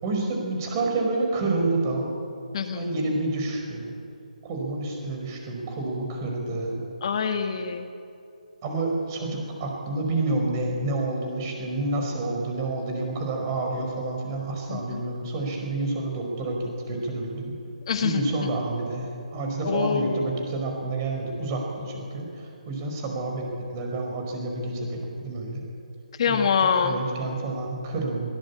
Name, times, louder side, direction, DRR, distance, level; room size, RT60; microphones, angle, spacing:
voice 1, 0.0-2.1 2.7-3.9 4.4-6.8 8.6-17.6 18.0-25.6 26.3-26.4 26.8-28.3, right 2 dB, 25° right, 1 dB, 5.1 m, -29 dB
voice 2, 7.0-7.9 14.7-15.0 17.9-18.2 19.6-20.3 26.2-27.0, left 6 dB, 40° left, 6 dB, 1.4 m, -25 dB
21.5 x 18.5 x 8.6 m, 2.5 s
hypercardioid pair, 160°, 4 cm